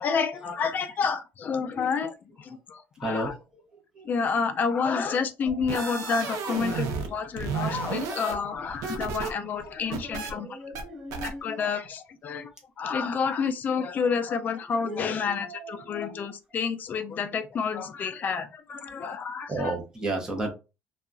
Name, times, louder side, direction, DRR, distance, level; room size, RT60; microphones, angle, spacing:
voice 1, 0.0-3.3 4.0-10.5 11.2-12.5 12.8-19.7, left 5 dB, 30° left, 0.4 m, -29 dB
voice 2, 3.0-3.6 3.9-4.1 5.1-5.2 5.6-5.7 6.4-6.6 9.5-11.7 14.8-16.3 19.5-20.5, right 2 dB, 10° right, 0.8 m, -35 dB
sound 1, 5.5-7.1 7.4-9.3 9.6-10.3 10.7-10.8 11.1-11.3, right 5 dB, 80° right, 0.7 m, -32 dB
2.8 x 2.3 x 2.4 m
cardioid pair, 165°, 6 cm